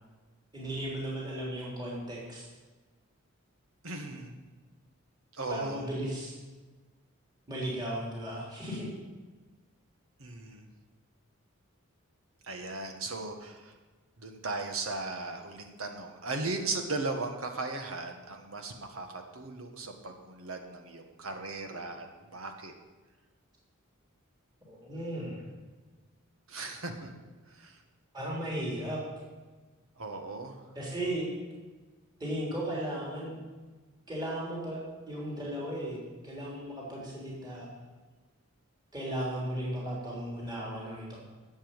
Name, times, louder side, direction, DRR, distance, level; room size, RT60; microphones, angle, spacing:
voice 1, 0.5-2.4 5.5-6.3 7.5-8.9 24.6-25.4 28.1-29.0 30.7-31.3 32.2-33.4 34.1-34.8 35.1-37.7 38.9-41.2, right 1 dB, 20° right, -5 dB, 3.3 m, -35 dB
voice 2, 3.8-4.3 5.3-5.8 10.2-10.6 12.4-13.7 14.2-22.7 26.5-27.1 27.5-27.8 30.0-30.6, right 3 dB, 80° right, 5 dB, 1.7 m, -37 dB
11.5 x 7.5 x 9.1 m, 1.3 s
head